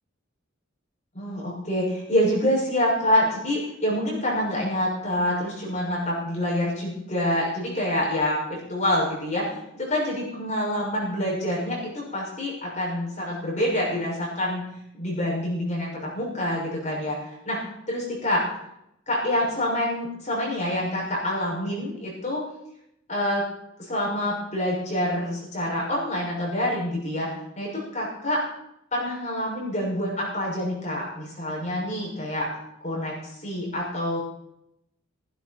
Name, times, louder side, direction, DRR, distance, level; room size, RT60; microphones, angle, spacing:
voice 1, 1.1-14.6 14.9-18.5 19.1-22.4 23.1-23.5 23.8-27.3 27.6-28.4 28.9-32.5 32.8-34.2, left 1 dB, 35° left, -5 dB, 6.2 m, -26 dB
16.0 x 15.5 x 4.4 m, 0.80 s
head